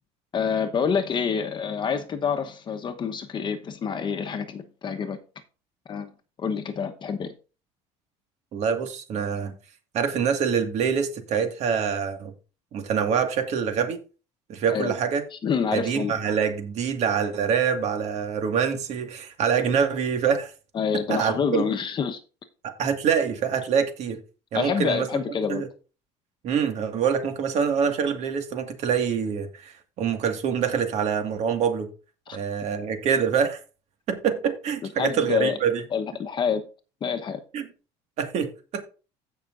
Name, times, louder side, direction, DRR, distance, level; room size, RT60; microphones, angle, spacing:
voice 1, 0.3-5.2 5.9-6.1 6.4-7.3 14.7-15.0 15.3-16.2 20.7-22.2 24.5-25.6 32.3-32.4 34.8-35.6 35.9-36.6 37.0-37.4, left 6 dB, 35° left, 1.0 m, -27 dB
voice 2, 8.5-9.5 9.9-12.3 12.7-14.0 14.5-15.2 15.7-20.5 21.1-21.6 22.6-24.2 24.5-25.1 25.5-25.7 26.4-31.9 32.3-33.6 34.1-35.8 37.5-37.6 38.2-38.8, right 7 dB, 55° right, 1.8 m, -25 dB
16.0 x 5.8 x 2.5 m
cardioid pair, 115°, 13 cm